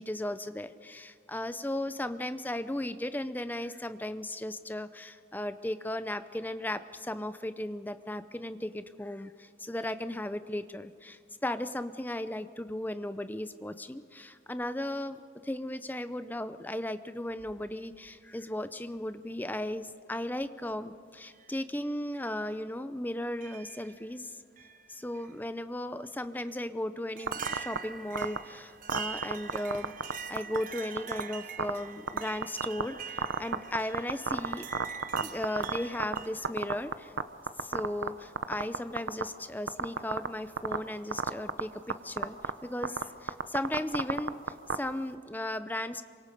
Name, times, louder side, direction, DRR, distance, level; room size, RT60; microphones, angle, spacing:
voice 1, 0.0-24.3 24.9-29.9 30.3-34.7 35.2-37.1 37.6-42.4 42.6-44.3 44.7-46.0, left 1 dB, 10° left, 12 dB, 0.6 m, -36 dB
sound 1, 17.3-18.2 19.3-19.4 20.4-20.7 21.3-21.5 22.1-22.3 23.4-24.1 24.6-25.3 26.5-26.6 27.2-36.3, right 7 dB, 45° right, 1.0 m, -44 dB
sound 2, 27.3-27.8 28.2-28.4 28.9-30.1 30.4-30.6 31.0-31.2 31.6-31.7 32.1-32.8 33.2-36.2 36.4-37.2 37.5-38.1 38.4-39.2 39.7-40.3 40.6-40.8 41.1-41.6 41.9-42.0 42.2-42.5 42.8-43.0 43.3-44.8, right 5 dB, 80° right, 0.9 m, -28 dB
27.5 x 24.5 x 5.3 m, 2.2 s
head